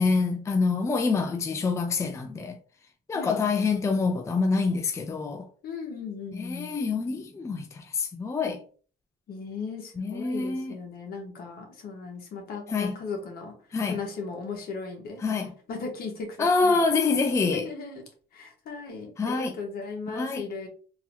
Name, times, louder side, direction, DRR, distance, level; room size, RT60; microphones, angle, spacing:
voice 1, 0.0-2.6 3.1-5.5 6.3-8.6 10.0-10.7 12.7-12.9 13.7-14.0 15.2-15.5 16.4-17.7 19.2-19.5 20.1-20.4, left 4 dB, 15° left, 0.4 m, -26 dB
voice 2, 3.1-3.4 5.6-6.7 9.3-13.5 13.9-15.2 15.7-16.8 17.5-18.0 18.3-20.7, left 4 dB, 65° left, 1.4 m, -37 dB
3.8 x 2.8 x 2.8 m
cardioid pair, 110°, 17 cm